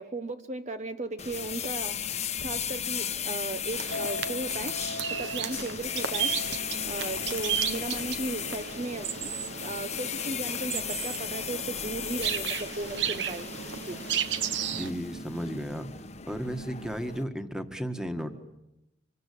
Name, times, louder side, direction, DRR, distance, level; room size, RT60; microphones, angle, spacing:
voice 1, 0.0-2.0 2.4-6.4 6.8-13.5 13.8-14.0, right 2 dB, 40° right, 8 dB, 1.0 m, -36 dB
sound 1, 1.2-17.2, left 8 dB, 35° left, 1.1 m, -36 dB
sound 2, 3.7-14.9, right 8 dB, 65° right, 1.3 m, -34 dB
Chink clink, 3.9-10.2, left 2 dB, 75° left, 1.3 m, -43 dB
voice 2, 14.7-15.9 16.3-18.3, equal, 5° right, 7 dB, 1.7 m, -34 dB
26.5 x 25.0 x 8.6 m, 0.89 s
head